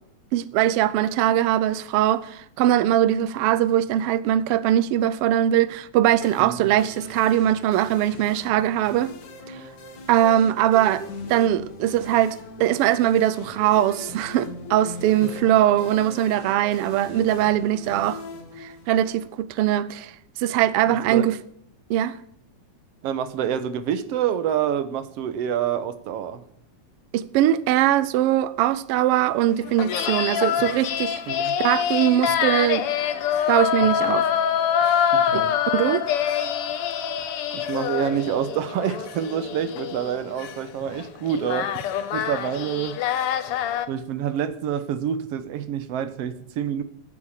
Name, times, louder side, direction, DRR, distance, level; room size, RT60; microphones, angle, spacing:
voice 1, 0.3-9.1 9.5-9.6 10.1-11.0 11.3-18.2 18.6-20.1 20.4-21.4 21.9-22.2 27.1-31.2 31.6-32.9 33.5-34.3 35.3-35.4 35.7-36.0, right 12 dB, 90° right, 1.2 m, -21 dB
sound 1, 6.2-19.3, left 2 dB, 80° left, 3.5 m, -40 dB
voice 2, 6.4-6.7 15.2-15.3 21.1-21.3 23.0-26.4 31.3-31.5 35.1-35.6 37.5-41.8 42.1-43.0 43.9-46.8, right 9 dB, 65° right, 1.7 m, -27 dB
sound 2, 29.6-43.9, left 9 dB, 65° left, 1.5 m, -25 dB
14.0 x 7.5 x 7.2 m
omnidirectional pair, 3.4 m